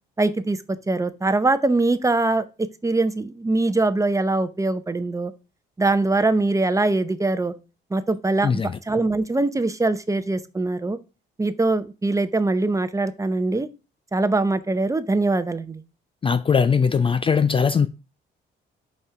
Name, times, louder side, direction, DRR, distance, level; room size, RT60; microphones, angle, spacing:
voice 1, 0.2-5.3 5.8-7.5 7.9-11.0 11.4-13.7 14.1-15.8, right 2 dB, 15° right, 0.7 m, -22 dB
voice 2, 8.4-8.8 16.2-17.9, left 6 dB, 25° left, 0.4 m, -20 dB
5.5 x 4.3 x 4.8 m
cardioid pair, 90°, 20 cm